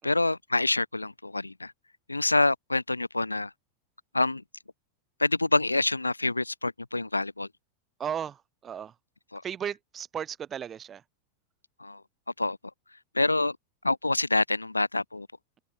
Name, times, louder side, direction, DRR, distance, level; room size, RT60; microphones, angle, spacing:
voice 1, 0.0-1.7 2.1-3.5 4.1-4.4 5.2-7.5 9.3-9.4 11.8-12.0 12.4-12.6 13.1-13.6 13.8-15.3, left 2 dB, 85° left, 2.6 m, -26 dB
voice 2, 8.0-8.9 9.4-11.0, right 8 dB, 25° right, 5.1 m, -35 dB
open air
figure-of-eight pair, 90°, 0 cm